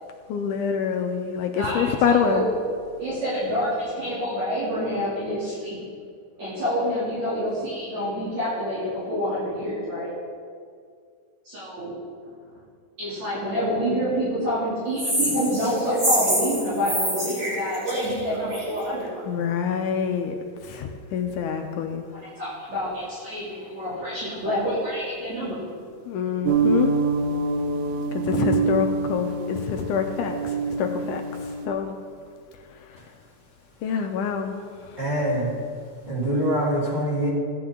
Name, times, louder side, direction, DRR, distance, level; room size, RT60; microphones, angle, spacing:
voice 1, 0.3-2.5 19.3-20.4 20.6-22.1 26.1-27.0 28.1-32.0 32.9-33.0 33.8-34.6 34.9-35.0, left 7 dB, 85° left, 4 dB, 1.8 m, -26 dB
voice 2, 1.5-2.4 2.9-5.8 6.4-10.1 11.5-11.9 13.0-19.3 22.1-25.7, equal, 50° right, -11 dB, 3.8 m, -27 dB
sound 1, 15.0-18.8, right 1 dB, 30° right, 1.3 m, -26 dB
sound 2, 26.5-31.7, right 4 dB, 75° right, 2.0 m, -25 dB
voice 3, 35.0-35.5 36.1-37.3, right 1 dB, 10° right, -8 dB, 3.0 m, -24 dB
14.5 x 9.3 x 3.7 m, 2.1 s
omnidirectional pair, 4.2 m